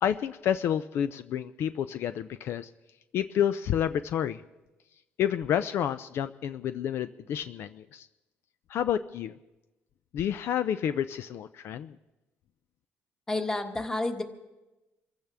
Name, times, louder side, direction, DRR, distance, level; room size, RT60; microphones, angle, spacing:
voice 1, 0.0-2.7 3.1-4.4 5.2-8.1 8.7-9.4 10.1-12.0, left 9 dB, 65° left, 12 dB, 0.5 m, -29 dB
voice 2, 13.3-14.2, left 2 dB, 15° left, 5 dB, 1.5 m, -30 dB
26.0 x 15.5 x 3.5 m, 1.0 s
cardioid pair, 120°, 4 cm